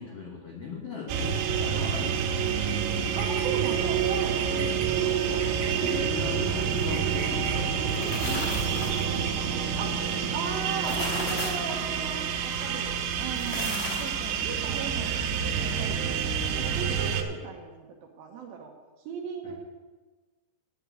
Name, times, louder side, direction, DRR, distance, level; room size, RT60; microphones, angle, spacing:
voice 1, 0.0-2.7 4.5-9.2 13.5-13.8 19.4-19.6, left 5 dB, 80° left, -2 dB, 1.3 m, -40 dB
sound 1, 1.1-17.2, right 7 dB, 85° right, 3.0 m, -28 dB
Bird vocalization bird call bird song, 3.0-3.8 4.2-4.9 5.4-6.0 6.6-7.6 8.4-9.3 10.1-10.2 10.6-11.1, right 5 dB, 55° right, 2.3 m, -39 dB
voice 2, 3.2-4.4 9.8-9.9 10.3-16.1 16.5-18.7 19.0-19.6, right 5 dB, 70° right, 2 dB, 2.6 m, -37 dB
sound 2, 7.7-9.2 10.6-11.7 13.2-14.2, left 2 dB, 25° left, 2.4 m, -35 dB
9.9 x 5.9 x 8.4 m, 1.3 s
omnidirectional pair, 4.9 m